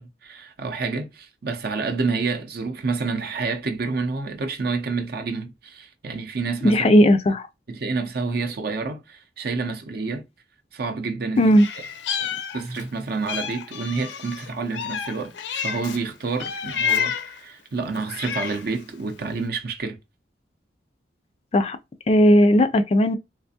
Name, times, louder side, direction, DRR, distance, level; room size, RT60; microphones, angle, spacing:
voice 1, 0.0-6.9 7.7-10.2 10.7-11.5 12.2-12.3 12.5-20.0, right 4 dB, 55° right, 0.5 m, -28 dB
voice 2, 6.6-7.5 11.4-11.7 21.5-21.8 22.1-23.2, equal, 35° left, 0.3 m, -16 dB
Meow, 11.5-12.9 13.3-16.0 16.4-17.4 17.9-18.8, left 7 dB, 85° left, 0.5 m, -29 dB
3.3 x 3.2 x 2.7 m
head